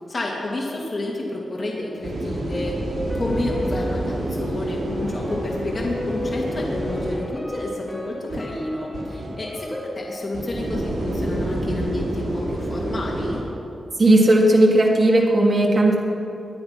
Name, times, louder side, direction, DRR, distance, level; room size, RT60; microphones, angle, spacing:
voice 1, 0.1-2.8 3.1-13.4, left 2 dB, 30° left, -3 dB, 2.7 m, -29 dB
sound 1, 2.0-7.2 8.3-8.4 8.9-9.3 10.3-13.4, right 1 dB, 90° right, 3.9 m, -28 dB
sound 2, 2.3-11.3 11.6-11.7, left 2 dB, 5° left, 3.2 m, -35 dB
voice 2, 14.0-15.9, right 1 dB, 40° right, 0 dB, 2.5 m, -16 dB
23.0 x 8.9 x 6.1 m, 2.9 s
wide cardioid pair, 120°, 0 cm